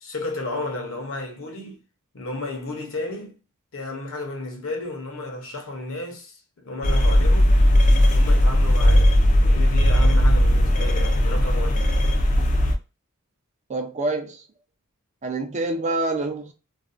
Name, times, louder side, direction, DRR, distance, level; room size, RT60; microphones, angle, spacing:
voice 1, 0.0-1.8 2.1-3.4 3.7-7.5 8.1-9.1 9.4-11.9, left 2 dB, 65° left, 0.8 m, -32 dB
sound 1, 6.8-12.7, equal, 35° left, 0.4 m, -17 dB
voice 2, 13.7-14.5 15.2-16.5, right 2 dB, 35° right, 0.5 m, -26 dB
2.5 x 2.1 x 2.4 m
head